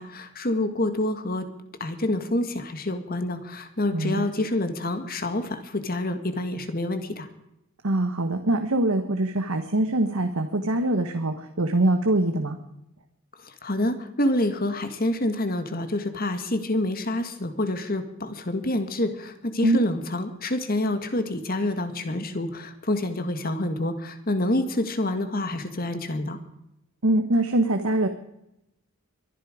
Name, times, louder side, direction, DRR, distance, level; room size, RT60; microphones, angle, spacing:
voice 1, 0.0-1.4 1.8-7.3 13.6-26.4, left 1 dB, 40° left, 8 dB, 1.7 m, -27 dB
voice 2, 3.9-4.3 7.8-12.6 19.6-19.8 27.0-28.1, right 1 dB, 75° right, 6 dB, 1.3 m, -23 dB
23.5 x 11.5 x 5.1 m, 0.84 s
head